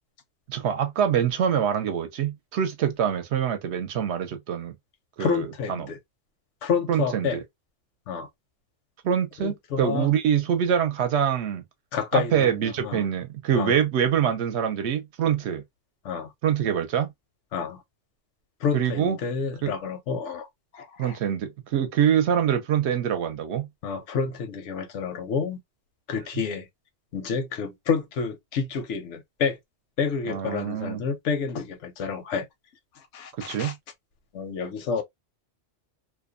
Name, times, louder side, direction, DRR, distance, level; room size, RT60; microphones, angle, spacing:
voice 1, 0.5-4.7 5.2-5.9 6.9-7.4 9.0-11.6 12.1-15.6 16.4-17.1 18.7-19.2 19.6-19.7 21.0-23.7 30.3-31.0 33.4-33.7, right 8 dB, 70° right, 0.8 m, -25 dB
voice 2, 5.2-6.0 6.6-7.4 8.1-8.3 9.4-10.1 11.9-13.1 13.5-13.8 16.0-16.3 17.5-17.8 18.6-20.5 20.7-21.2 23.8-25.6 26.1-26.7 27.1-29.6 30.0-32.5 32.9-33.7 34.3-35.0, left 6 dB, 80° left, 0.9 m, -29 dB
2.5 x 2.1 x 2.3 m
omnidirectional pair, 1.2 m